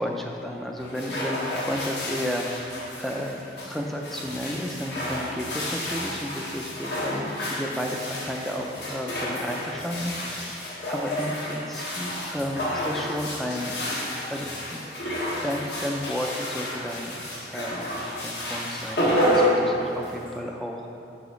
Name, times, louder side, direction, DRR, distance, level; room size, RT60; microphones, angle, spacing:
voice 1, 0.0-10.6 10.9-13.8 14.3-14.9 15.4-17.9 18.2-21.0, equal, ahead, 0 dB, 0.4 m, -32 dB
sound 1, 0.8-20.4, equal, 70° left, 1.3 m, -30 dB
5.5 x 4.9 x 5.1 m, 2.8 s
head